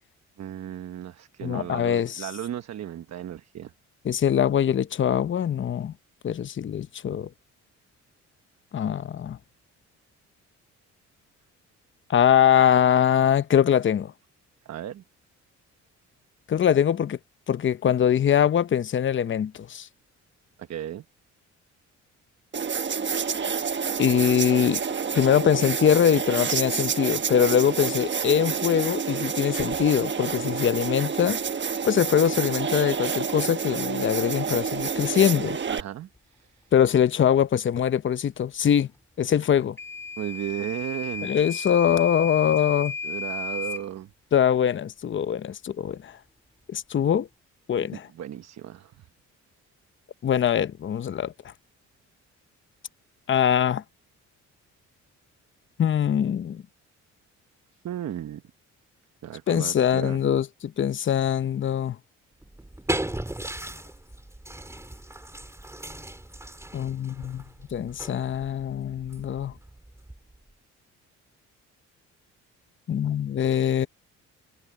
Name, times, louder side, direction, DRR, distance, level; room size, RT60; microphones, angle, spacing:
voice 1, 0.4-3.7 14.6-15.0 20.6-21.0 35.7-36.7 40.2-41.3 43.0-44.1 47.9-49.1 57.8-58.4 59.2-60.2, right 11 dB, 60° right, 1.1 m, -35 dB
voice 2, 1.4-2.3 4.0-5.9 6.2-7.3 8.7-9.4 12.1-14.1 16.5-17.2 17.5-19.9 24.0-24.8 25.1-31.4 31.8-35.6 36.7-38.9 39.2-39.8 41.2-42.9 44.3-46.2 46.7-47.3 47.7-48.1 50.2-51.3 53.3-53.8 55.8-56.6 59.5-62.0 66.7-67.4 67.7-69.5 72.9-73.9, left 9 dB, 40° left, 0.8 m, -23 dB
sound 1, 22.5-35.8, right 6 dB, 40° right, 1.3 m, -28 dB
Microwave oven / Alarm, 39.8-43.9, left 4 dB, 10° left, 2.2 m, -34 dB
sound 2, 62.4-70.5, right 1 dB, 10° right, 4.4 m, -37 dB
cardioid pair, 90°, 30 cm